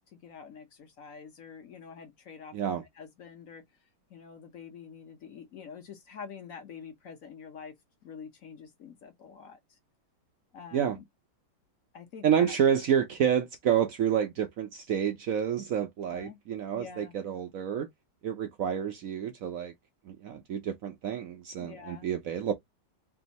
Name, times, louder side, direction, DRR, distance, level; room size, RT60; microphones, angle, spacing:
voice 1, 0.1-2.7 2.9-3.6 4.1-7.7 8.0-9.8 10.5-11.0 11.9-12.6 16.1-16.4 16.7-17.1 21.6-22.1, left 6 dB, 55° left, 1.2 m, -46 dB
voice 2, 2.5-2.8 10.7-11.0 12.2-17.9 18.2-19.7 20.1-22.5, right 8 dB, 65° right, 0.9 m, -29 dB
3.5 x 2.7 x 4.0 m
omnidirectional pair, 1.9 m